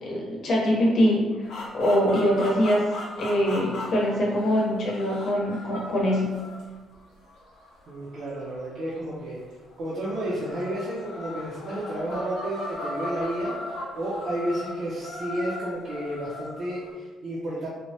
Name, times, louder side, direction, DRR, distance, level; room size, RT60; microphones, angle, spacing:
voice 1, 0.0-2.9 3.2-6.3, equal, 55° left, -3 dB, 0.8 m, -23 dB
sound 1, 1.4-9.2 9.9-16.9, left 1 dB, 90° left, 0.6 m, -38 dB
voice 2, 7.9-9.4 9.8-17.7, right 1 dB, 55° right, -7 dB, 0.5 m, -31 dB
3.1 x 2.1 x 2.7 m, 1.3 s
cardioid pair, 115°, 0 cm